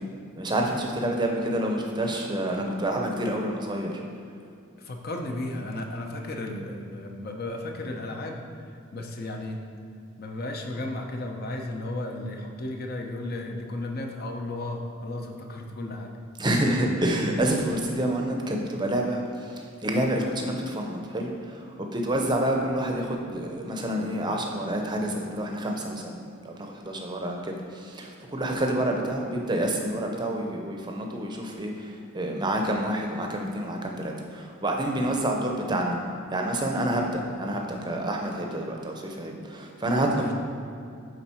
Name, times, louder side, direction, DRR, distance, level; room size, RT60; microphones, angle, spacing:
voice 1, 0.4-3.9 16.4-19.2 19.8-21.6 21.9-26.2 26.4-36.0 36.3-40.3, right 1 dB, 20° right, 1 dB, 0.7 m, -28 dB
voice 2, 4.8-8.4 8.9-9.6 10.2-16.1 40.2-40.3, left 2 dB, 45° left, 2 dB, 0.7 m, -34 dB
10.0 x 3.9 x 4.4 m, 2.5 s
head